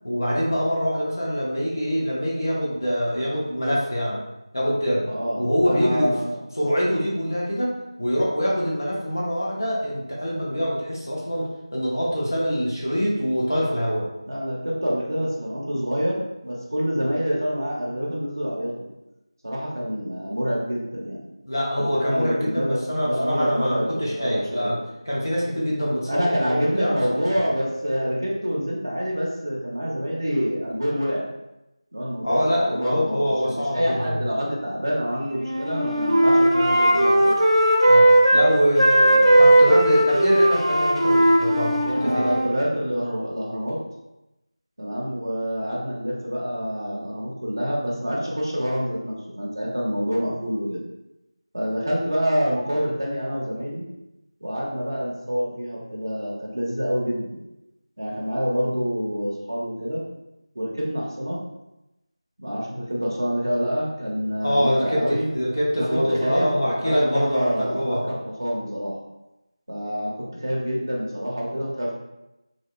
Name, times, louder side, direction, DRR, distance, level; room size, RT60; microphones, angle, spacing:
voice 1, 0.0-4.2 4.5-5.0 5.4-6.1 6.6-7.7 8.0-14.1 21.4-24.8 25.0-27.4 32.2-34.2 37.8-38.1 38.3-42.4 64.4-68.0, equal, 40° left, -4 dB, 0.6 m, -24 dB
voice 2, 5.1-6.4 14.3-18.7 19.4-21.2 21.9-24.7 26.1-31.3 31.9-37.3 41.9-43.8 44.8-50.8 51.5-53.9 54.4-57.4 58.0-60.0 60.5-61.4 62.4-65.3 65.8-68.9 69.7-71.9, equal, 40° right, -4 dB, 0.5 m, -27 dB
Wind instrument woodwind instrument, 35.4-38.5 38.8-42.5, right 1 dB, 85° right, 0.6 m, -17 dB
2.7 x 2.1 x 2.3 m, 0.92 s
figure-of-eight pair, 180°, 3 cm